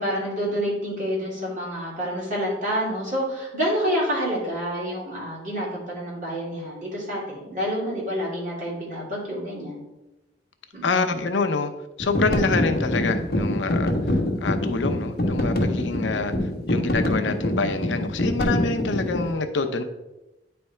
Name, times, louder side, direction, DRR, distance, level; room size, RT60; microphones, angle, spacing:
voice 1, 0.0-9.8 10.7-11.0, equal, 45° right, -5 dB, 2.6 m, -28 dB
voice 2, 10.8-11.7 12.0-19.8, left 3 dB, 80° left, 7 dB, 0.6 m, -26 dB
sound 1, 12.0-19.3, left 1 dB, 55° left, 1.0 m, -25 dB
9.4 x 3.4 x 4.3 m, 1.0 s
head